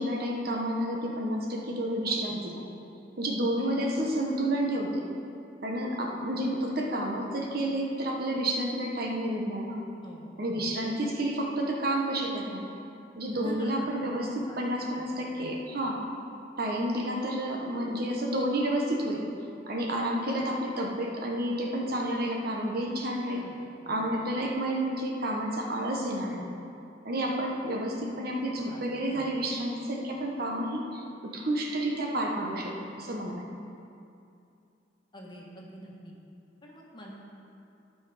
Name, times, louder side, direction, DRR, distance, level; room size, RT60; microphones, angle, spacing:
voice 1, 0.0-2.6 3.2-5.0 5.6-9.8 10.4-12.7 13.2-16.0 16.6-19.3 19.7-23.4 23.9-26.5 27.0-33.5, right 1 dB, 60° right, 0 dB, 1.2 m, -30 dB
voice 2, 3.6-3.9 10.0-10.3 13.4-13.8 14.5-15.1 23.3-23.6 28.6-28.8 35.1-36.1 36.6-37.1, equal, 25° left, -3 dB, 1.5 m, -45 dB
13.0 x 5.7 x 5.0 m, 2.6 s
head